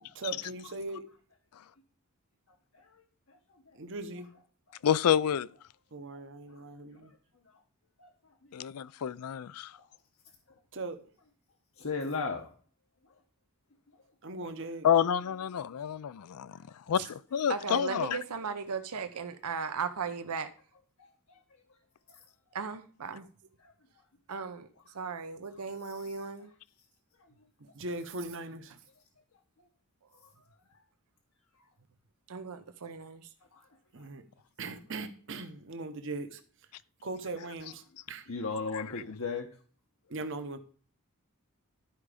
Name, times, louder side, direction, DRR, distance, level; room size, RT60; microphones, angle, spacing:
voice 1, 0.0-1.0 3.7-4.3 5.9-7.1 10.7-11.0 14.2-14.9 27.7-28.7 33.9-34.2 34.6-36.4 37.0-38.3 40.1-40.6, right 2 dB, 55° right, 0.9 m, -39 dB
voice 2, 4.8-5.5 8.5-9.7 14.8-16.6 16.9-18.2 38.7-39.0, left 9 dB, 85° left, 0.4 m, -28 dB
voice 3, 11.8-12.4 38.3-39.5, left 4 dB, 65° left, 1.0 m, -33 dB
voice 4, 17.5-20.5 22.5-23.2 24.3-24.7 24.9-26.5 32.3-33.3, right 5 dB, 90° right, 0.8 m, -36 dB
12.0 x 4.9 x 5.0 m
head